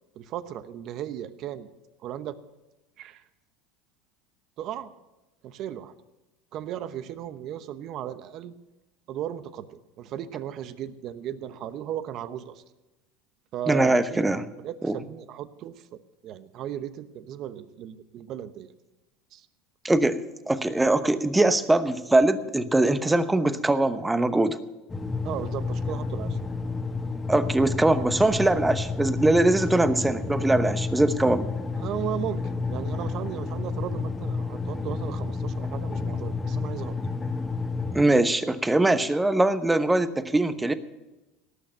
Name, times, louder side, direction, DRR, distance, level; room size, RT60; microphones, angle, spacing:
voice 1, 0.2-1.7 2.0-2.4 3.0-3.2 4.6-4.9 5.4-5.9 6.5-8.5 9.1-12.6 13.5-14.2 14.6-18.7 19.3-19.5 25.2-26.4 31.7-36.9, right 11 dB, 50° right, 13 dB, 0.9 m, -36 dB
voice 2, 13.7-14.4 14.8-14.9 19.8-20.2 20.5-24.6 27.3-31.5 37.9-40.7, right 2 dB, 10° right, 11 dB, 0.9 m, -22 dB
sound 1, 24.9-38.0, left 3 dB, 15° left, 1.3 m, -30 dB
18.0 x 6.5 x 9.1 m, 1.0 s
supercardioid pair, 105°, 0 cm